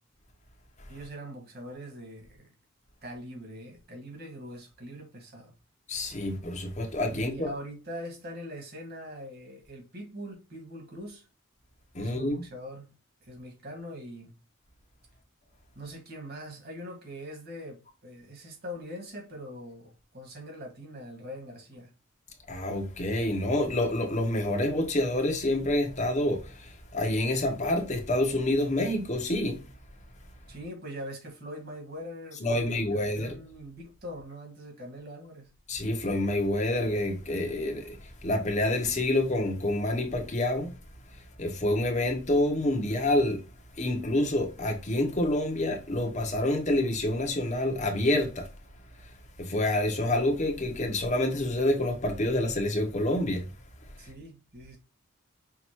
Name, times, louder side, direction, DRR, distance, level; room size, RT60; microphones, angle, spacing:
voice 1, 0.9-2.5 3.0-5.5 7.1-11.3 12.0-12.9 13.2-14.3 15.7-21.9 30.5-35.5 54.0-54.8, equal, 50° right, 1.8 m, -42 dB
voice 2, 5.9-7.5 11.9-12.3 22.5-29.7 32.4-33.3 35.7-40.8 41.1-43.4 43.8-48.5 49.0-49.1 49.4-53.5, left 1 dB, 35° left, 0.9 m, -27 dB
5.8 x 2.6 x 3.0 m
head